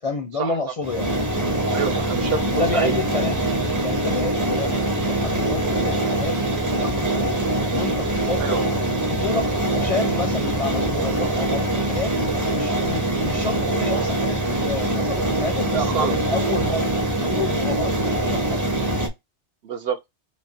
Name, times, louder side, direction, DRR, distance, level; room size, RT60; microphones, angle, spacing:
voice 1, 0.0-1.1 2.5-3.5 3.8-6.4 6.7-7.4 7.7-12.1 12.5-16.9 17.2-18.6, left 3 dB, 40° left, 0.5 m, -30 dB
sound 1, 0.8-19.1, right 1 dB, 20° right, 0.6 m, -23 dB
voice 2, 1.7-2.9 4.5-4.6 8.4-8.6 15.7-16.2 19.6-20.0, right 6 dB, 65° right, 0.8 m, -26 dB
5.3 x 2.1 x 2.7 m
omnidirectional pair, 1.2 m